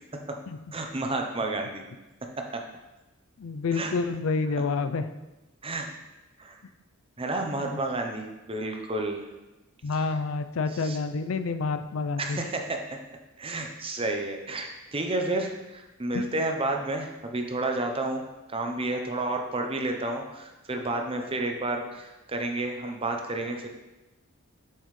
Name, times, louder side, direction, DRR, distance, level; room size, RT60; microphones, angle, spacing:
voice 1, 0.7-1.8 2.4-2.6 3.7-4.0 5.6-5.9 6.4-6.6 7.2-9.3 9.9-10.1 10.7-11.0 12.2-12.8 13.4-18.2 18.5-23.7, right 2 dB, 25° right, 3 dB, 0.7 m, -31 dB
voice 2, 3.4-5.1 7.5-7.8 9.8-12.4 16.1-16.3, left 4 dB, 70° left, 10 dB, 0.4 m, -29 dB
7.4 x 5.5 x 3.2 m, 1.0 s
head